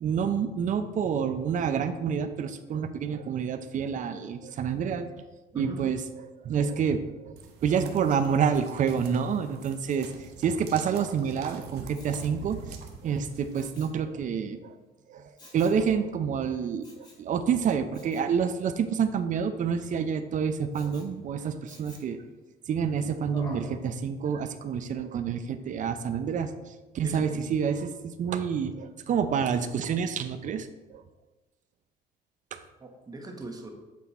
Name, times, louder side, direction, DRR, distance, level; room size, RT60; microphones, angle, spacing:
voice 1, 0.0-5.1 5.5-6.0 6.4-7.3 7.6-10.1 10.4-12.6 13.0-14.8 15.1-22.2 22.7-31.0 32.5-32.6, right 7 dB, 50° right, 10 dB, 0.6 m, -28 dB
voice 2, 5.5-5.8 27.0-27.6 32.8-33.7, right 1 dB, 20° right, 3 dB, 1.2 m, -41 dB
sound 1, 7.4-13.5, right 5 dB, 75° right, 1.0 m, -45 dB
Respiratory sounds, 11.9-12.4 13.5-14.0 15.4-15.8 16.8-17.3 17.9-18.3 20.7-21.1 21.7-22.2 23.3-23.7 24.2-24.3, left 2 dB, 25° left, 2.4 m, -48 dB
8.4 x 3.8 x 4.2 m, 1.1 s
cardioid pair, 110°, 17 cm